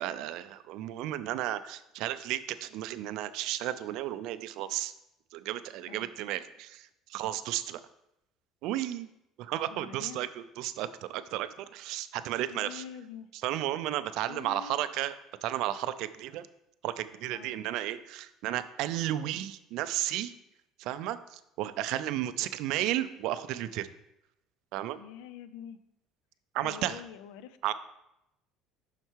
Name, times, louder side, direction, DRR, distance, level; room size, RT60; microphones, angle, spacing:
voice 1, 0.0-4.9 5.3-7.8 8.6-9.1 9.4-10.3 10.6-12.8 13.4-15.1 15.4-16.5 16.8-20.3 20.8-23.9 24.7-25.0 26.5-27.0 27.6-27.7, right 13 dB, 60° right, 13 dB, 0.3 m, -33 dB
voice 2, 9.7-10.2 12.5-13.3 14.3-14.8 17.3-17.6 25.0-25.8 26.6-27.6, left 9 dB, 85° left, 13 dB, 0.4 m, -45 dB
5.7 x 4.5 x 4.5 m, 0.85 s
cardioid pair, 160°, 0 cm